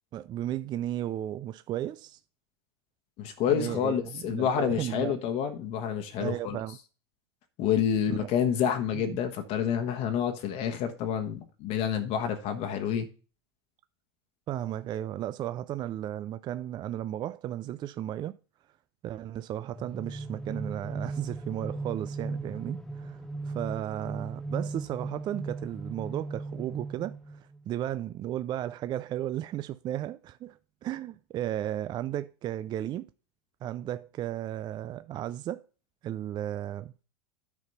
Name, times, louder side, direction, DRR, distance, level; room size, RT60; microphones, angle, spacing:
voice 1, 0.1-2.2 3.5-5.2 6.2-6.8 8.1-8.3 8.9-9.2 14.5-18.4 19.0-33.1 33.6-35.6 36.0-36.9, right 12 dB, 30° right, 0.4 m, -34 dB
voice 2, 3.2-6.6 7.6-13.1, left 8 dB, 50° left, 1.2 m, -28 dB
sound 1, 19.7-27.6, right 3 dB, 5° left, 0.8 m, -37 dB
9.7 x 4.2 x 5.4 m
hypercardioid pair, 105°, 14 cm